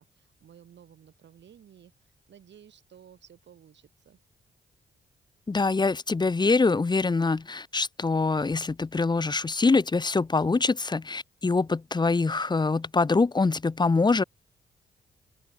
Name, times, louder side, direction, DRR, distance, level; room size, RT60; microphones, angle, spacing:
voice 1, 0.0-4.2, right 9 dB, 75° right, 5.0 m, -54 dB
voice 2, 5.5-14.2, left 3 dB, 25° left, 0.7 m, -24 dB
open air
cardioid pair, 65°, 19 cm